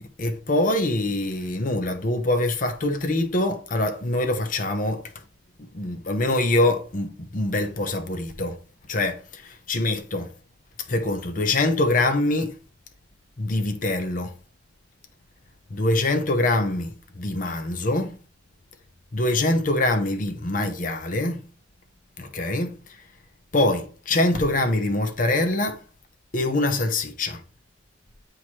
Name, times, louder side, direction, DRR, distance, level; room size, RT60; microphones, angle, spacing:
voice 1, 0.2-5.0 5.6-8.6 8.9-10.3 10.9-12.5 13.4-14.3 15.7-18.2 19.1-21.4 22.2-22.7 23.5-25.8 26.3-27.4, left 2 dB, 45° left, 0.8 m, -24 dB
8.0 x 3.2 x 4.2 m
head